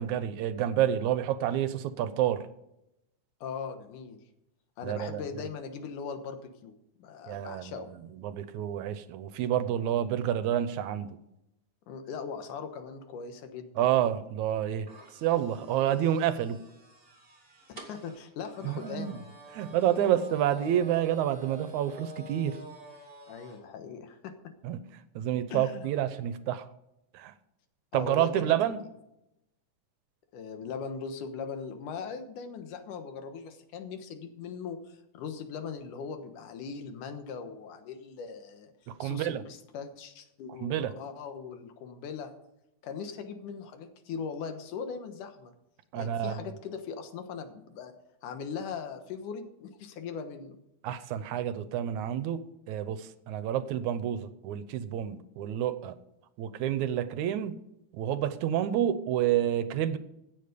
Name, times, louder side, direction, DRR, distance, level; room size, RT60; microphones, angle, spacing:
voice 1, 0.0-2.4 4.8-5.3 7.3-7.7 8.2-11.2 13.8-14.9 15.2-16.6 18.6-19.1 19.5-22.6 24.6-24.8 25.2-26.7 27.1-27.3 27.9-28.8 38.9-39.4 40.6-40.9 45.9-46.3 50.8-55.9 56.4-57.5 57.9-60.0, right 11 dB, 80° right, 13 dB, 2.1 m, -29 dB
voice 2, 3.4-4.2 4.8-7.9 11.9-13.9 17.7-19.2 23.3-24.5 25.5-25.9 27.9-28.5 30.3-38.7 39.0-42.3 42.8-45.5 45.9-47.9 48.2-50.6, left 6 dB, 85° left, 7 dB, 2.8 m, -40 dB
sound 1, 14.9-23.6, right 1 dB, 20° right, 2.3 m, -48 dB
16.0 x 7.5 x 5.1 m, 0.85 s
omnidirectional pair, 3.5 m